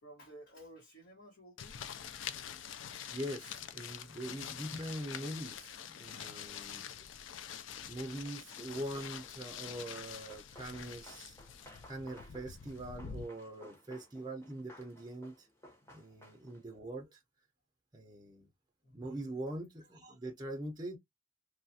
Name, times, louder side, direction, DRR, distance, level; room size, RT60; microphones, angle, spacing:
voice 1, 0.0-1.8 2.6-2.7 18.8-19.1 19.8-19.9, right 1 dB, 60° left, 1.2 m, -55 dB
sound 1, 1.6-13.2, left 8 dB, 75° left, 0.4 m, -46 dB
voice 2, 3.1-7.2 7.9-11.4 11.9-15.5 15.9-17.2 17.9-18.5 18.9-21.0, right 1 dB, 20° right, 0.5 m, -43 dB
Run, 8.5-16.7, left 1 dB, 15° left, 0.9 m, -58 dB
3.0 x 2.4 x 2.7 m
head